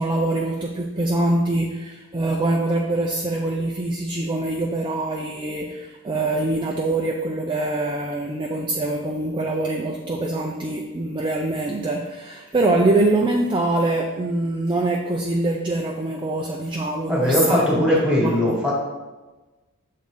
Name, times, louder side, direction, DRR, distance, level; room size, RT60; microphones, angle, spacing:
voice 1, 0.0-18.3, right 2 dB, 20° right, 1 dB, 0.4 m, -24 dB
voice 2, 17.1-18.7, left 1 dB, 5° right, -4 dB, 1.5 m, -20 dB
6.9 x 3.7 x 3.8 m, 1.2 s
head